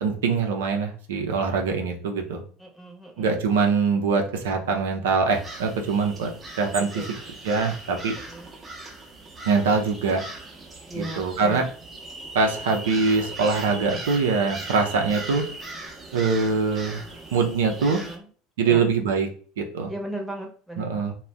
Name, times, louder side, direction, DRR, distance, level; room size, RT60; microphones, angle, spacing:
voice 1, 0.0-2.4 3.2-6.3 6.6-7.0 7.4-8.1 9.4-10.2 10.9-11.7 12.3-15.4 16.1-17.0 17.3-18.0 18.6-19.3 19.6-19.9 20.8-21.1, right 4 dB, 70° right, 3 dB, 0.5 m, -23 dB
voice 2, 2.6-3.3 6.8-7.1 8.1-8.5 10.9-11.6 17.9-18.3 18.6-18.8 19.9-21.1, right 1 dB, ahead, 1 dB, 0.9 m, -37 dB
sound 1, 5.3-18.2, right 2 dB, 25° right, 0.7 m, -39 dB
2.4 x 2.2 x 3.3 m, 0.42 s
figure-of-eight pair, 70°, 0 cm